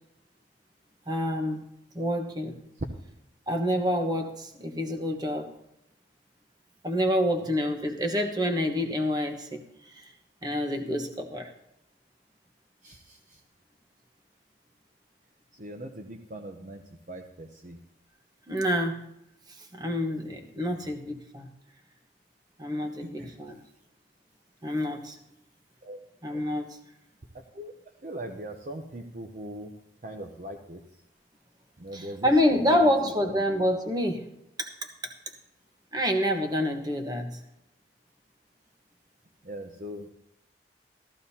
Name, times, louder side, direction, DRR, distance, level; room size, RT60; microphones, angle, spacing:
voice 1, 1.1-1.6 1.9-2.6 3.5-5.5 6.8-9.6 9.9-10.1 10.4-11.5 18.5-19.0 19.6-21.5 22.6-23.6 24.6-25.2 26.2-26.7 31.9-34.3 34.6-35.1 35.9-37.4, equal, 25° right, 5 dB, 1.2 m, -27 dB
voice 2, 12.8-13.2 15.6-16.8 17.1-17.8 20.7-20.9 23.0-23.3 25.8-26.0 27.3-27.7 28.0-29.7 30.0-30.8 31.8-32.3 32.7-33.3 39.4-40.1, right 1 dB, 45° right, 4 dB, 0.8 m, -40 dB
14.5 x 13.5 x 2.8 m, 0.80 s
head